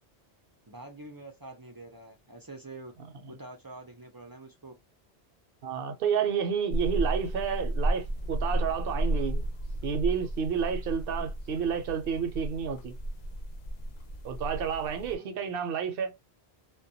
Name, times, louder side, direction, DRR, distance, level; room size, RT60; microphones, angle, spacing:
voice 1, 0.7-2.9 3.3-4.7 15.0-15.4, right 2 dB, 35° right, 0.4 m, -46 dB
voice 2, 5.6-9.5 9.8-12.9 14.2-16.1, right 7 dB, 65° right, 0.8 m, -30 dB
sound 1, 6.7-15.2, right 1 dB, 55° left, 0.5 m, -33 dB
2.2 x 2.2 x 2.6 m
omnidirectional pair, 1.1 m